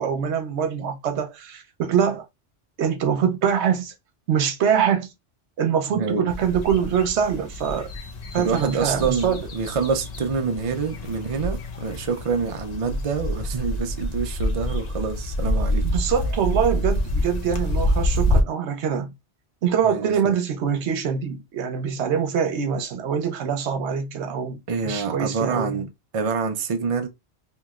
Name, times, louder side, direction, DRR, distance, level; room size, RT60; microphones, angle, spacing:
voice 1, 0.0-2.2 2.8-3.9 4.3-5.1 5.6-7.9 8.3-9.5 15.8-19.1 19.6-25.8, right 7 dB, 80° right, 1.0 m, -24 dB
voice 2, 6.0-6.3 8.4-15.8 19.8-20.3 24.7-27.1, right 5 dB, 40° right, 0.5 m, -26 dB
sound 1, 6.3-18.4, left 1 dB, 45° left, 0.6 m, -27 dB
3.0 x 2.8 x 2.3 m
omnidirectional pair, 1.2 m